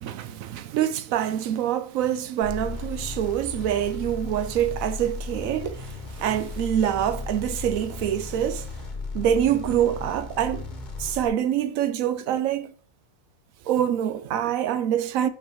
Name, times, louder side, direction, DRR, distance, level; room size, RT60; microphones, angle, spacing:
voice 1, 0.0-8.7 9.1-10.7 11.0-12.7 13.7-15.3, right 10 dB, 80° right, 1.0 m, -25 dB
sound 1, 2.4-11.3, left 4 dB, 35° left, 1.1 m, -35 dB
5.8 x 5.4 x 4.6 m
omnidirectional pair, 1.4 m